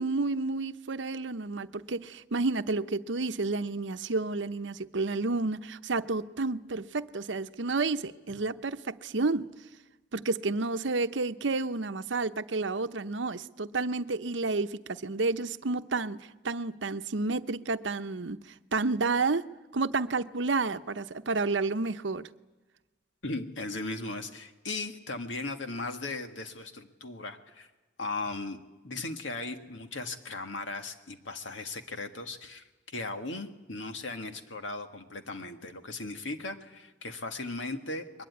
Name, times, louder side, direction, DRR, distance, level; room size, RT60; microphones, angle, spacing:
voice 1, 0.0-9.5 10.1-18.4 18.7-19.4 19.7-22.3, right 3 dB, 75° right, 0.8 m, -30 dB
voice 2, 23.2-27.7 28.0-28.6 28.8-38.2, left 3 dB, 85° left, 1.9 m, -37 dB
22.0 x 20.5 x 9.7 m
head